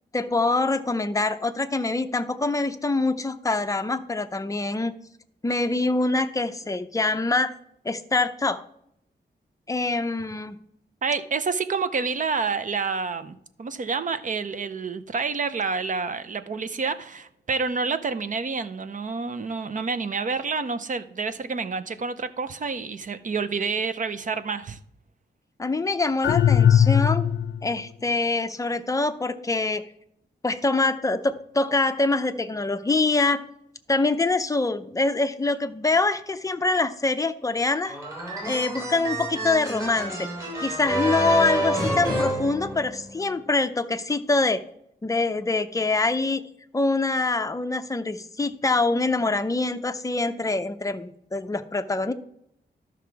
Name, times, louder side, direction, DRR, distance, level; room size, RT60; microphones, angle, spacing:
voice 1, 0.1-4.9 5.4-7.5 7.8-8.6 9.7-10.6 25.6-27.2 27.6-29.8 30.4-33.4 33.9-37.9 38.5-40.3 40.6-44.6 45.0-46.4 46.7-52.1, left 3 dB, 15° left, 0.5 m, -24 dB
voice 2, 11.0-24.8, right 4 dB, 45° right, 0.6 m, -28 dB
sound 1, 26.2-27.7, left 9 dB, 75° left, 0.6 m, -19 dB
sound 2, 37.8-43.2, right 1 dB, 15° right, 3.3 m, -28 dB
12.0 x 6.0 x 4.6 m
wide cardioid pair, 165°, 19 cm